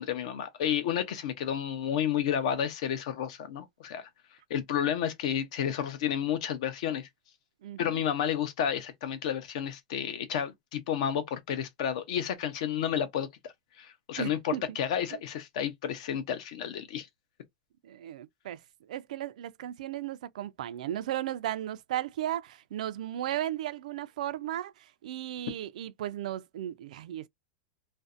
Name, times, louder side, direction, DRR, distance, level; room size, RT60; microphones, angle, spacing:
voice 1, 0.0-4.1 4.5-7.1 7.8-13.3 13.8-17.1, left 9 dB, 60° left, 0.6 m, -31 dB
voice 2, 7.6-8.0 14.2-14.8 15.1-15.2 17.8-18.6 18.9-27.3, right 12 dB, 75° right, 0.3 m, -35 dB
2.5 x 2.0 x 2.4 m
supercardioid pair, 155°, 4 cm